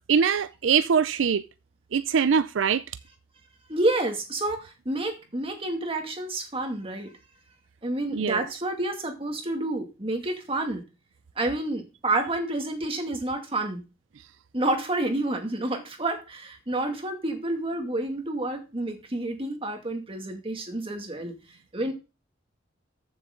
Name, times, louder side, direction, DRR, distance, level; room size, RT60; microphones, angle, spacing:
voice 1, 0.1-1.4 1.9-2.8 8.1-8.4, right 6 dB, 85° right, 0.5 m, -23 dB
voice 2, 3.7-7.1 7.8-10.8 11.4-13.8 14.5-21.3 21.7-21.9, right 2 dB, 30° right, 2.2 m, -29 dB
14.0 x 7.0 x 3.8 m
head